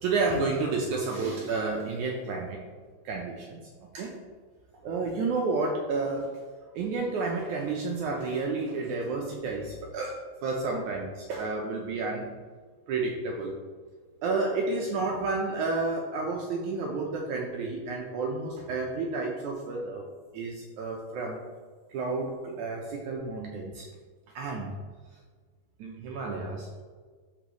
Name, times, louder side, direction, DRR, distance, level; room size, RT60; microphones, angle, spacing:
voice 1, 0.0-2.6 3.1-3.6 3.9-4.2 4.8-6.4 6.7-12.3 12.9-13.6 14.2-20.0 20.3-21.4 21.9-23.9 24.4-24.8 25.8-26.7, right 3 dB, 80° right, 0 dB, 1.8 m, -31 dB
13.0 x 4.5 x 3.1 m, 1.5 s
omnidirectional pair, 4.3 m